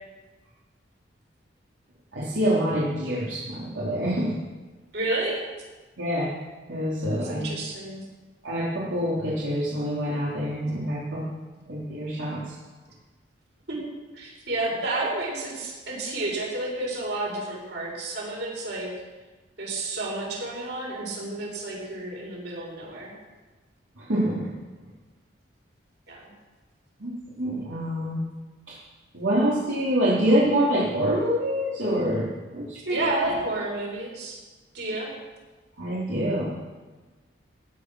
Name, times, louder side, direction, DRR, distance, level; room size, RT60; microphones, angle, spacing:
voice 1, 2.1-4.3 6.0-6.3 6.7-7.4 8.4-11.2 11.7-12.4 24.0-24.4 27.0-28.2 28.7-28.8 29.1-32.3 32.5-33.0 35.8-36.4, equal, 85° right, -8 dB, 3.2 m, -26 dB
voice 2, 4.9-5.4 7.2-8.0 13.7-13.8 14.1-18.9 19.6-23.1 26.1-26.3 32.9-34.4 34.7-35.1, right 2 dB, 60° right, -3 dB, 5.9 m, -30 dB
15.5 x 10.0 x 6.2 m, 1.2 s
head